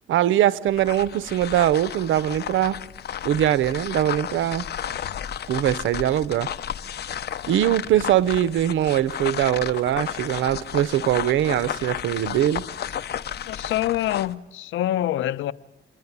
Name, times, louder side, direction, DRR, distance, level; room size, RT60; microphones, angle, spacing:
voice 1, 0.1-2.8 3.2-4.7 5.5-6.5 7.5-12.6, right 12 dB, 75° right, 0.7 m, -22 dB
sound 1, 0.7-14.3, left 9 dB, 55° left, 0.8 m, -33 dB
voice 2, 13.3-15.5, left 13 dB, 80° left, 0.7 m, -26 dB
26.5 x 10.5 x 9.5 m
cardioid pair, 90°, 20 cm